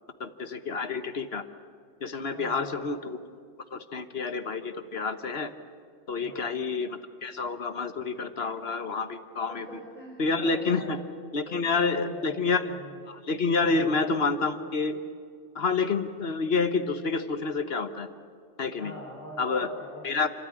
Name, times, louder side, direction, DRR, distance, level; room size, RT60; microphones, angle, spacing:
voice 1, 0.2-1.4 2.0-3.2 3.7-5.5 6.1-9.8 10.2-11.0 11.3-12.7 13.1-15.0 15.5-18.1 18.6-18.9 19.4-19.7 20.0-20.3, left 4 dB, 60° left, 10 dB, 1.4 m, -28 dB
voice 2, 2.3-2.9 6.2-6.5 9.5-11.1 11.4-13.0 13.6-14.0 18.8-20.2, equal, 35° right, -5 dB, 5.9 m, -43 dB
29.0 x 13.5 x 9.8 m, 2.2 s
omnidirectional pair, 1.2 m